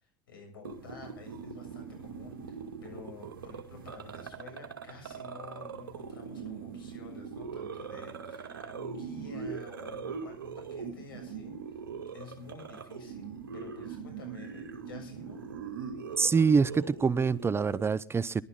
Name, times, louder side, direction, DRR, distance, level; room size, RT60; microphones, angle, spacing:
voice 1, 0.3-11.6 12.1-15.4, left 4 dB, 85° left, 7.1 m, -50 dB
sound 1, 0.6-17.9, right 6 dB, 90° right, 2.4 m, -41 dB
voice 2, 16.2-18.4, right 5 dB, 20° right, 0.7 m, -25 dB
22.5 x 12.5 x 3.7 m
hypercardioid pair, 80°, 11 cm